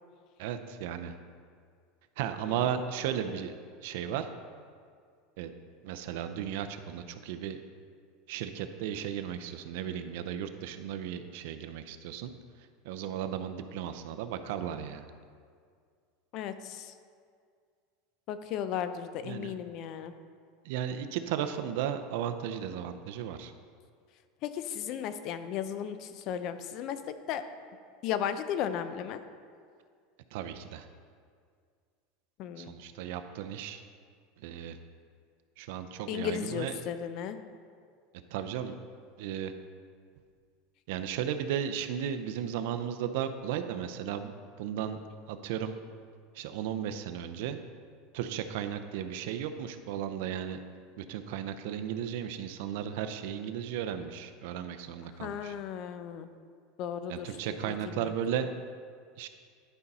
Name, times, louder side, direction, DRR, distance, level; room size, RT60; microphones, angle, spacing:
voice 1, 0.4-1.1 2.2-3.6 3.8-4.3 5.4-5.5 5.8-7.6 8.3-12.3 12.8-15.1 19.2-19.5 20.6-23.5 30.3-30.9 32.6-33.8 34.4-34.8 35.6-36.8 38.3-38.8 39.2-39.5 40.9-45.0 45.3-45.7 46.3-47.6 48.1-50.6 51.0-55.6 57.1-58.5 59.2-59.3, right 9 dB, 70° right, 9 dB, 0.6 m, -35 dB
voice 2, 16.3-16.9 18.3-20.1 24.4-27.4 28.0-29.2 32.4-32.7 36.1-37.4 55.2-56.3 56.8-57.3 57.7-58.1, left 9 dB, 45° left, 11 dB, 0.5 m, -35 dB
11.5 x 5.4 x 4.1 m, 2.1 s
supercardioid pair, 150°, 0 cm